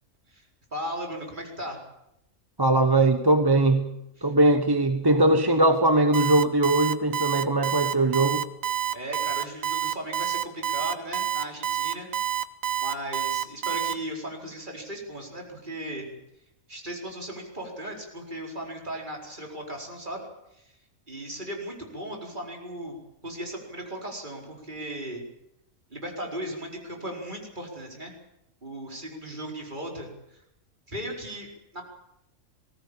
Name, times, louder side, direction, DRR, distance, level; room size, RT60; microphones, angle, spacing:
voice 1, 0.7-1.8 4.2-4.3 8.9-12.1 12.8-16.1 16.7-20.3 20.6-20.7 21.1-23.0 23.2-25.2 25.9-28.1 28.6-30.1 30.9-31.5 31.7-31.8, right 1 dB, 35° right, 1 dB, 4.8 m, -36 dB
voice 2, 2.6-8.5, right 2 dB, 20° right, 8 dB, 1.0 m, -21 dB
Alarm, 6.1-13.9, right 11 dB, 75° right, 1.5 m, -27 dB
20.0 x 18.0 x 8.8 m, 0.84 s
omnidirectional pair, 1.4 m